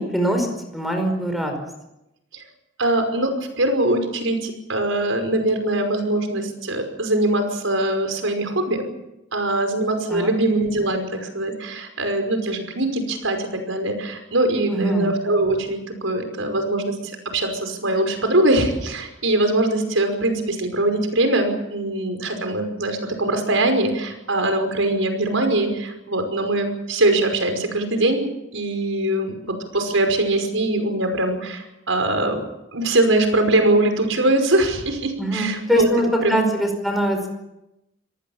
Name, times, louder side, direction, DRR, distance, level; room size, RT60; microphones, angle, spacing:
voice 1, 0.0-1.5 10.1-10.3 14.7-15.2 35.2-37.3, right 1 dB, ahead, 4 dB, 5.2 m, -23 dB
voice 2, 2.8-3.3 3.6-8.8 9.3-17.0 17.3-28.2 28.5-32.4 32.7-35.9 36.2-36.5, right 1 dB, 85° right, 6 dB, 5.5 m, -22 dB
26.0 x 19.0 x 7.4 m, 0.91 s
head